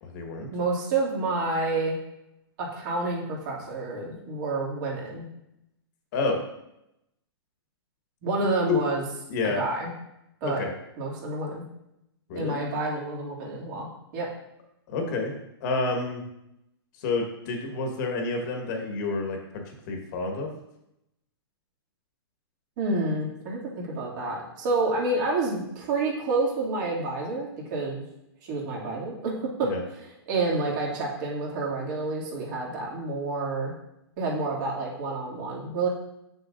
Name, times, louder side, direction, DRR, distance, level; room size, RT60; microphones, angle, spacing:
voice 1, 0.0-0.5 6.1-6.4 8.7-8.8 9.3-9.6 10.4-10.7 12.3-12.6 14.9-15.3 15.6-16.2 17.0-20.5 29.6-29.8, left 3 dB, 45° left, 2 dB, 1.4 m, -29 dB
voice 2, 0.5-2.0 2.6-5.3 8.2-9.0 9.5-9.9 10.4-10.6 11.0-11.6 12.3-14.3 22.8-28.0 28.4-33.7 34.2-35.9, right 3 dB, 45° right, -3 dB, 2.4 m, -29 dB
7.1 x 6.7 x 2.6 m, 0.83 s
hypercardioid pair, 140°, 14 cm